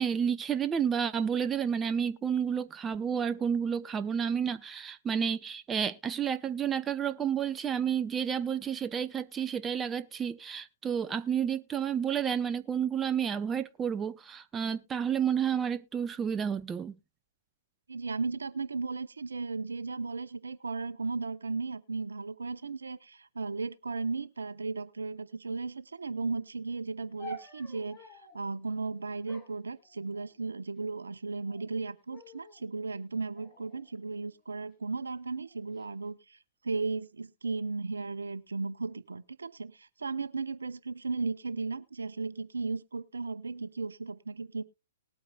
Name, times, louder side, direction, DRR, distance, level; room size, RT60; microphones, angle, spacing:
voice 1, 0.0-17.0, right 8 dB, 15° right, 0.5 m, -30 dB
voice 2, 17.9-36.4 36.6-44.6, right 4 dB, 75° right, 0.7 m, -35 dB
sound 1, 27.2-28.4 29.2-30.5 31.2-31.7 32.1-32.7 33.3-34.6 35.4-35.9, equal, 20° left, 2.5 m, -50 dB
19.5 x 8.6 x 2.3 m
figure-of-eight pair, 115°, 0 cm